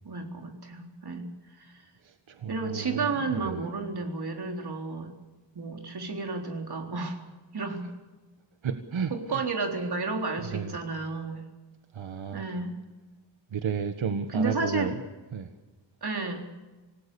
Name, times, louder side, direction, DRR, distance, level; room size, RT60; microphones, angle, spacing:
voice 1, 0.0-1.3 1.5-1.8 2.5-5.1 5.5-7.2 7.5-7.9 9.1-11.5 12.3-12.8 14.3-14.9 16.0-16.4, right 3 dB, 55° right, 2 dB, 3.9 m, -32 dB
voice 2, 2.0-3.7 8.6-9.1 10.4-10.8 11.9-12.5 13.5-14.9 15.3-15.5, right 6 dB, 90° right, 7 dB, 1.6 m, -32 dB
26.5 x 18.5 x 7.0 m, 1.2 s
wide cardioid pair, 150°, 46 cm